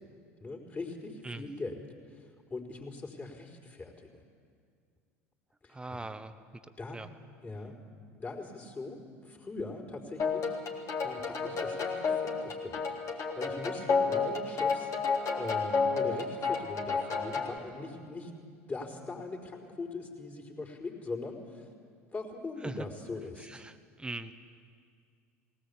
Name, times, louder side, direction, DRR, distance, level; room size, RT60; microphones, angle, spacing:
voice 1, 0.4-4.2 5.6-5.8 6.8-7.0 7.4-7.8 8.2-10.6 11.0-14.9 15.3-18.3 18.7-21.7 22.1-23.6, left 3 dB, 25° left, -1 dB, 4.4 m, -41 dB
voice 2, 5.7-6.3 6.9-7.1 22.6-22.7 23.4-24.3, right 2 dB, 10° right, 11 dB, 1.1 m, -40 dB
sound 1, 10.2-17.6, left 5 dB, 40° left, 3.2 m, -31 dB
20.0 x 18.0 x 8.6 m, 2.2 s
hypercardioid pair, 75°, 8 cm